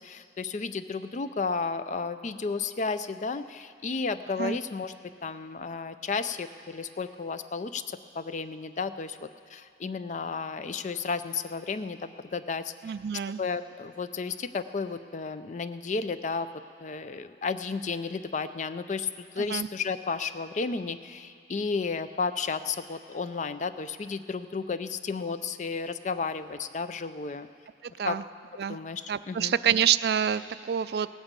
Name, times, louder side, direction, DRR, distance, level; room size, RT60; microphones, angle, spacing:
voice 1, 0.0-4.9 5.2-12.9 13.4-16.5 16.8-27.5 28.1-28.2 28.7-29.5, left 4 dB, 40° left, 12 dB, 0.4 m, -33 dB
voice 2, 12.8-13.4 19.4-19.7 27.8-28.2 28.6-28.8 29.1-31.1, right 9 dB, 60° right, 14 dB, 0.3 m, -27 dB
17.5 x 8.8 x 7.4 m, 2.3 s
head